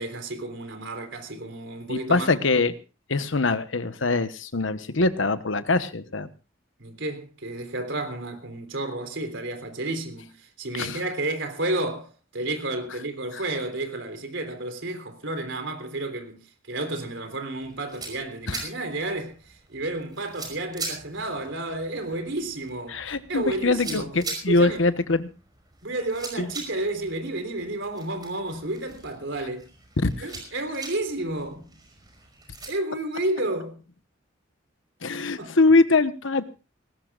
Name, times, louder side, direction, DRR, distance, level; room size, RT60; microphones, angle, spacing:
voice 1, 0.0-2.3 6.8-16.4 16.7-23.0 23.3-24.1 24.5-24.8 25.8-29.7 30.2-31.7 32.7-33.8 35.4-35.5, right 2 dB, 70° right, 3.6 m, -31 dB
voice 2, 1.9-2.7 3.1-6.3 10.7-11.0 13.3-13.4 18.5-18.6 22.9-25.3 26.4-26.5 30.0-30.2 35.0-36.4, left 3 dB, 75° left, 1.1 m, -23 dB
Garden sheers cutting, 17.6-32.7, right 3 dB, 20° right, 5.3 m, -42 dB
20.0 x 18.5 x 2.4 m
head